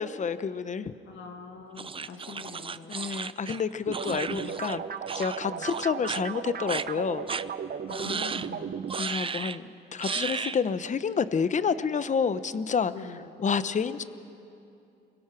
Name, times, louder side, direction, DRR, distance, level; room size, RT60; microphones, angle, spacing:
voice 1, 0.0-0.9 2.9-4.8 5.1-7.2 9.0-12.9 13.4-14.0, left 6 dB, 40° left, 13 dB, 1.0 m, -29 dB
voice 2, 1.1-2.9 4.3-4.6 5.4-5.7 7.9-8.7 12.9-13.3, left 6 dB, 75° left, 3 dB, 1.8 m, -43 dB
sound 1, 1.8-4.8 5.1-5.4 5.7-6.2 6.7-6.8 7.3-7.4 7.9-8.5 8.9-9.6 10.0-10.6, right 5 dB, 25° right, 0.6 m, -34 dB
sound 2, 3.9-9.0, right 7 dB, 50° right, 1.0 m, -36 dB
29.0 x 22.0 x 6.2 m, 2.7 s
cardioid pair, 90°, 20 cm